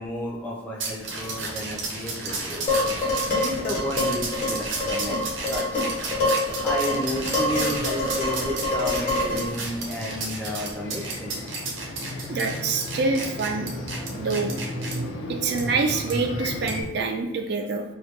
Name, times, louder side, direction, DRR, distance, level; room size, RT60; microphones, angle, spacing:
voice 1, 0.0-5.6 6.6-11.4, equal, 10° left, -4 dB, 0.5 m, -32 dB
sound 1, 0.8-15.0 15.6-15.7 16.1-16.2 16.7-16.9, right 3 dB, 80° right, 0.8 m, -33 dB
sound 2, 1.1-16.8, left 1 dB, 75° left, 0.5 m, -37 dB
Dishes pots and pans, 2.7-9.5, left 2 dB, 40° left, 1.2 m, -26 dB
voice 2, 12.3-13.7 14.2-14.6 15.3-17.8, right 4 dB, 55° right, 2 dB, 0.3 m, -26 dB
3.3 x 2.3 x 3.1 m, 0.99 s
head